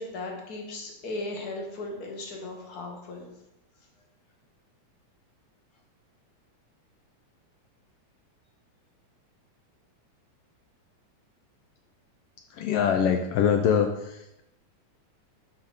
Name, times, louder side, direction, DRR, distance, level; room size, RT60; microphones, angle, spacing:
voice 1, 0.0-3.3, left 2 dB, 40° left, 1 dB, 1.5 m, -37 dB
voice 2, 12.5-14.4, left 7 dB, 85° left, 6 dB, 1.3 m, -24 dB
6.8 x 4.8 x 6.5 m, 0.85 s
omnidirectional pair, 3.3 m